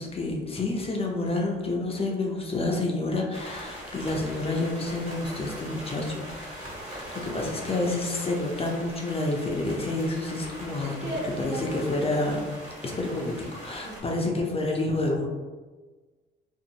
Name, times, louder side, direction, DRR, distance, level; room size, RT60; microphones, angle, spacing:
voice 1, 0.0-10.9 11.4-12.4 12.8-15.3, left 2 dB, 30° left, 0 dB, 0.5 m, -29 dB
sound 1, 3.3-14.0, equal, 35° right, 1.3 m, -41 dB
voice 2, 7.0-7.9 10.8-11.8 13.8-14.0, right 1 dB, 65° right, -6 dB, 1.2 m, -37 dB
2.6 x 2.4 x 2.8 m, 1.3 s
cardioid pair, 90°, 20 cm